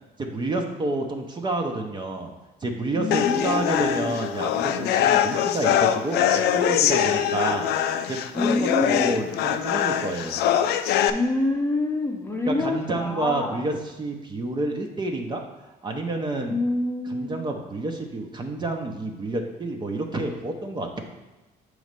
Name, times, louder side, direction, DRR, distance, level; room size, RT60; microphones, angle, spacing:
voice 1, 0.2-2.3 2.6-7.7 8.1-10.4 12.5-15.4 15.8-16.6 17.0-21.0, right 2 dB, 25° right, 3 dB, 0.7 m, -29 dB
voice 2, 2.9-4.2 8.3-9.3 11.1-13.6 16.4-17.3, left 2 dB, 15° left, 2 dB, 0.8 m, -27 dB
sound 1, 3.1-11.1, left 10 dB, 75° left, 0.4 m, -23 dB
6.9 x 3.2 x 5.2 m, 1.1 s
cardioid pair, 110°, 17 cm